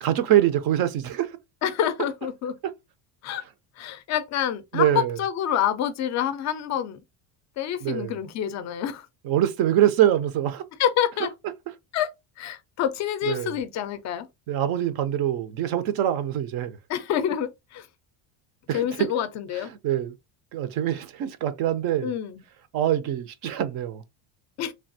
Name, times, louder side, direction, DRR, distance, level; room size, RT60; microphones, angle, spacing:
voice 1, 0.0-1.4 2.6-2.7 3.4-3.5 4.7-5.2 7.8-8.2 9.2-10.6 13.3-13.6 14.5-16.8 18.7-19.1 19.5-20.1 20.5-22.1 22.7-24.0, right 11 dB, 50° right, 0.4 m, -24 dB
voice 2, 1.6-2.6 3.2-3.4 3.8-7.0 7.6-9.1 10.8-11.3 11.9-12.1 12.4-14.3 16.9-17.9 18.7-19.7 22.0-22.4 24.6-24.7, left 10 dB, 40° left, 0.4 m, -27 dB
3.3 x 2.3 x 2.6 m
cardioid pair, 160°, 49 cm